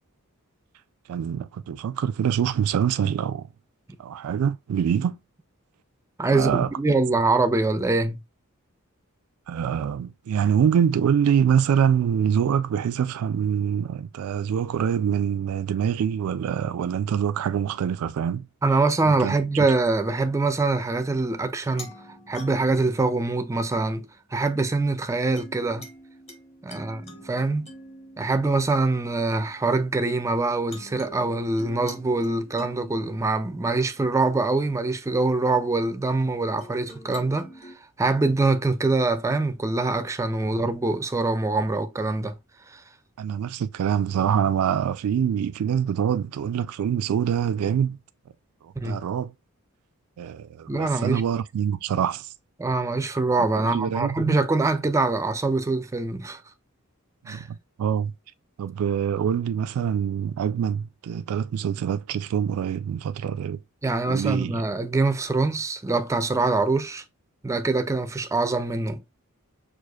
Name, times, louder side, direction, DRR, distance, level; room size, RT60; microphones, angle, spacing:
voice 1, 1.1-3.5 4.0-5.1 6.3-6.7 9.5-18.5 19.2-19.4 43.2-48.0 48.6-49.3 50.2-52.3 53.6-54.4 57.2-58.1 58.6-63.6 64.1-64.6, right 8 dB, 90° right, 0.3 m, -25 dB
voice 2, 6.2-8.2 18.6-21.9 22.3-25.9 26.6-27.7 28.2-42.4 42.7-42.8 48.8-49.0 50.7-51.2 52.6-56.4 57.3-57.5 63.8-67.0 67.4-69.0, right 3 dB, 15° right, 0.3 m, -24 dB
sound 1, 21.8-24.0 25.4-30.1 30.7-34.9 36.6-37.7, equal, 30° left, 0.9 m, -47 dB
6.2 x 2.4 x 2.3 m
head